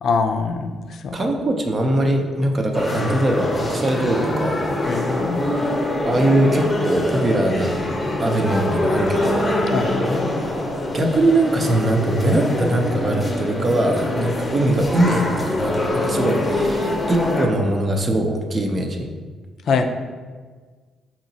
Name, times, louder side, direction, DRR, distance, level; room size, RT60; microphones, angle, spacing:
voice 1, 0.0-1.2 4.9-5.5 9.7-10.4 19.7-19.8, left 4 dB, 65° left, 6 dB, 0.3 m, -23 dB
voice 2, 1.1-4.6 6.0-7.9 8.2-9.5 10.9-19.1, right 1 dB, 35° right, 3 dB, 0.5 m, -21 dB
sound 1, 2.7-17.5, left 1 dB, 20° left, 0.7 m, -24 dB
4.8 x 2.9 x 2.7 m, 1.5 s
cardioid pair, 90°, 0 cm